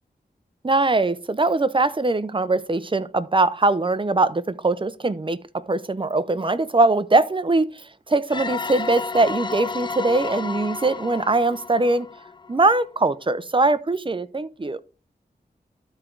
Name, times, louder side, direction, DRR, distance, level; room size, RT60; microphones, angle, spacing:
voice 1, 0.6-5.4 5.7-7.6 8.1-12.1 12.5-14.8, right 2 dB, 30° right, 0.7 m, -21 dB
sound 1, 8.3-12.9, left 4 dB, 25° left, 0.4 m, -32 dB
12.0 x 4.6 x 3.8 m
wide cardioid pair, 70°, 18 cm